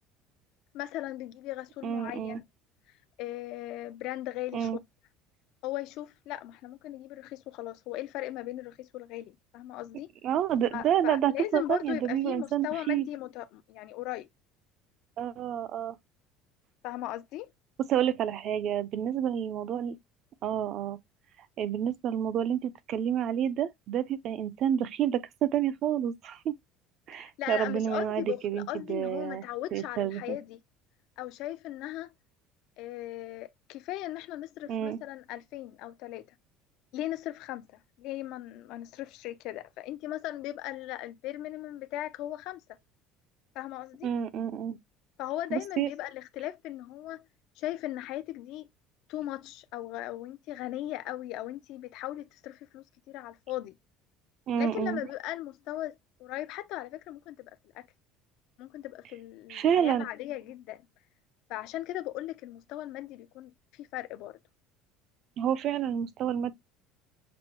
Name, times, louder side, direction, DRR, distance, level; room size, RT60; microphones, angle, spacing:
voice 1, 0.7-2.4 3.2-4.7 5.6-10.1 10.7-14.3 16.8-17.5 27.1-30.6 31.2-32.1 32.8-36.3 36.9-42.6 43.5-44.1 45.2-47.3 47.6-48.7 49.1-53.8 54.6-57.9 58.6-60.9 61.5-64.4, left 14 dB, 60° left, 0.4 m, -38 dB
voice 2, 1.8-2.4 4.5-4.8 10.2-13.1 15.2-16.0 17.9-20.0 20.4-21.0 21.6-26.5 27.1-29.4 29.7-30.4 34.7-35.0 44.0-44.8 45.5-45.9 54.5-55.0 59.5-60.1 65.4-66.5, right 9 dB, 45° right, 0.4 m, -29 dB
6.0 x 2.0 x 2.8 m
cardioid pair, 155°, 0 cm